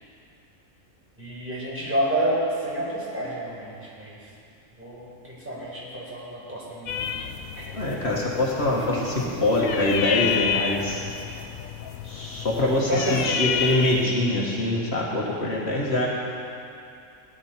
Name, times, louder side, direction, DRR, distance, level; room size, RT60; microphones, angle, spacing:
voice 1, 1.2-4.2 4.8-7.7 8.8-8.9 9.2-9.3 12.6-13.4, right 1 dB, 10° right, -7 dB, 4.2 m, -30 dB
sound 1, 6.9-14.0, left 7 dB, 85° left, 1.1 m, -30 dB
voice 2, 7.7-9.1 9.4-11.0 12.0-16.1, left 1 dB, 50° left, -4 dB, 1.9 m, -24 dB
18.0 x 11.5 x 4.4 m, 2.5 s
omnidirectional pair, 1.4 m